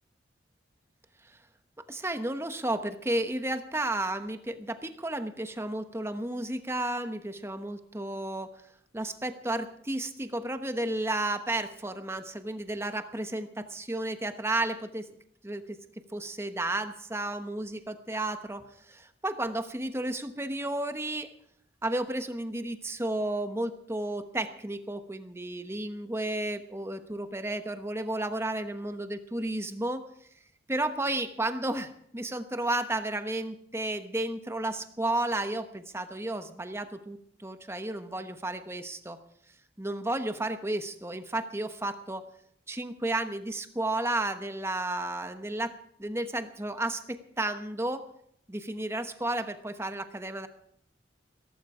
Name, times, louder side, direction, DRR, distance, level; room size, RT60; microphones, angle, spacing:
voice 1, 1.9-8.5 8.9-15.1 15.4-15.8 16.1-21.3 21.8-30.1 30.7-39.2 39.8-42.2 42.7-45.7 46.0-48.0 48.5-50.5, right 1 dB, 15° right, 9 dB, 1.0 m, -32 dB
16.5 x 15.0 x 4.9 m, 0.68 s
head